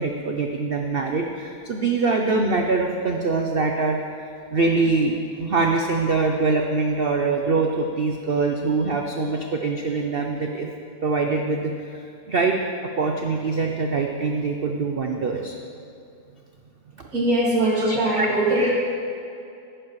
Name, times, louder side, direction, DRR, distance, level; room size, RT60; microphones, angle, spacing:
voice 1, 0.0-4.0 4.5-10.7 11.0-12.6 13.0-15.5 17.0-17.1 17.8-18.3, right 3 dB, 70° right, 2 dB, 0.5 m, -24 dB
voice 2, 17.1-18.7, right 1 dB, 50° right, -5 dB, 2.8 m, -21 dB
14.5 x 11.0 x 3.1 m, 2.6 s
omnidirectional pair, 1.9 m